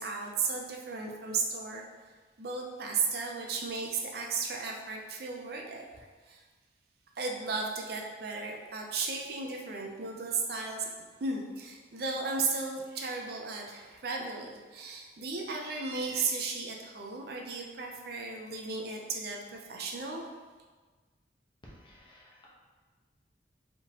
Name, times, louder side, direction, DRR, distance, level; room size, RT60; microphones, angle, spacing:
voice 1, 0.0-1.8 2.4-6.4 7.2-10.9 11.2-20.2, right 4 dB, 55° right, 1 dB, 0.5 m, -35 dB
voice 2, 21.6-22.5, equal, 25° left, -5 dB, 0.9 m, -54 dB
4.8 x 3.7 x 2.8 m, 1.4 s
head